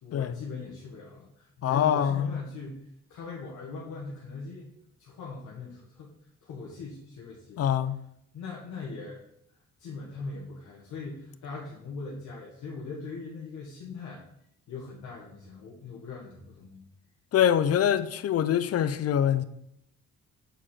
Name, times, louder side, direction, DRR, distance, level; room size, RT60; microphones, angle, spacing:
voice 1, 0.0-4.7 5.0-6.1 6.4-7.6 8.3-9.2 9.8-14.2 14.7-16.8, left 4 dB, 70° left, 1.5 m, -40 dB
voice 2, 1.6-2.3 7.6-8.0 17.3-19.4, left 9 dB, 55° left, 0.6 m, -24 dB
7.1 x 4.4 x 4.4 m
cardioid pair, 90°, 30 cm